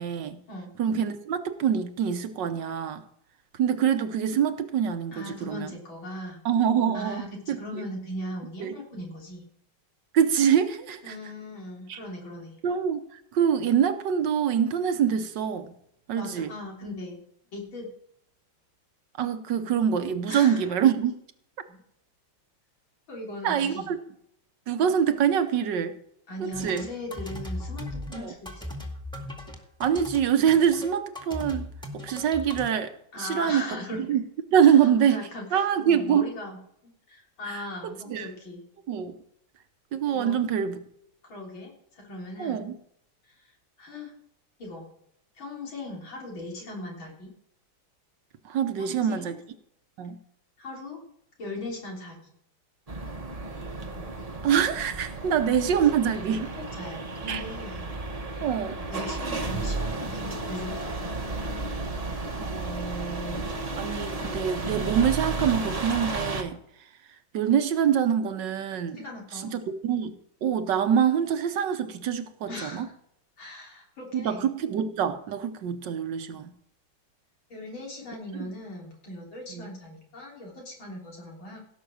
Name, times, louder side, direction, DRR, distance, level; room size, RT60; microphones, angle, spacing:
voice 1, 0.0-0.4 0.8-3.0 3.6-5.7 6.4-7.9 8.6-8.7 10.1-11.2 11.9-12.0 12.6-15.7 16.1-16.5 19.2-21.1 23.4-24.0 24.7-26.0 26.4-26.9 28.1-28.3 29.8-31.7 31.9-34.2 34.5-35.2 35.5-36.3 37.5-37.6 38.1-38.3 38.9-39.1 39.9-40.8 42.4-42.7 48.4-49.4 50.0-50.2 54.4-56.5 57.3-57.4 58.4-58.8 62.4-63.5 63.8-66.6 67.3-69.0 69.3-72.9 74.1-76.5 78.4-78.5 79.5-79.7, right 8 dB, 70° right, 1.5 m, -25 dB
voice 2, 5.1-6.4 6.9-9.4 11.0-12.6 16.2-17.2 17.5-17.9 20.3-20.7 21.7-21.8 23.1-23.9 26.3-28.6 33.1-34.2 34.6-36.6 36.8-38.6 40.1-40.4 41.3-42.7 43.3-44.1 44.6-44.9 45.4-47.3 48.9-49.4 50.6-51.0 51.4-52.2 55.2-55.3 56.7-57.9 58.9-60.9 68.9-69.5 72.5-72.9 73.4-74.5 77.5-81.6, left 1 dB, 85° left, 4.3 m, -39 dB
sound 1, 26.5-32.7, left 1 dB, ahead, 1.8 m, -38 dB
sound 2, 52.9-66.4, right 2 dB, 25° right, 1.0 m, -33 dB
16.5 x 6.3 x 6.3 m
omnidirectional pair, 2.1 m